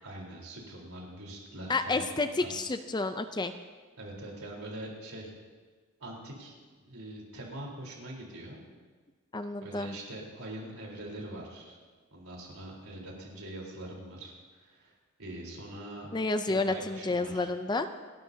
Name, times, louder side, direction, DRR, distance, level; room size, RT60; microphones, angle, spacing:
voice 1, 0.0-2.7 4.0-5.3 6.0-8.6 9.6-11.8 12.1-16.1 16.4-17.5, right 1 dB, 85° right, -2 dB, 4.0 m, -43 dB
voice 2, 1.7-3.5 9.3-10.0 16.1-17.9, left 3 dB, 20° left, 9 dB, 0.5 m, -30 dB
28.0 x 12.0 x 2.8 m, 1.4 s
head